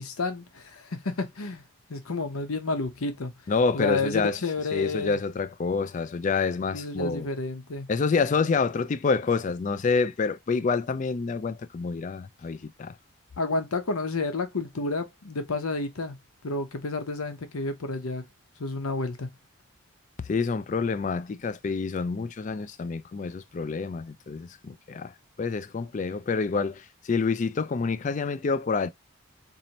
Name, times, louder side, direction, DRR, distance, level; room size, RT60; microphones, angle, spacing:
voice 1, 0.0-1.6 1.9-3.3 3.7-5.2 6.7-7.9 13.4-16.2 16.4-18.2 18.6-19.3, left 3 dB, 90° left, 0.8 m, -30 dB
voice 2, 3.5-4.4 4.7-7.3 7.9-13.0 20.2-28.9, left 4 dB, 35° left, 0.3 m, -27 dB
4.2 x 2.7 x 2.9 m
head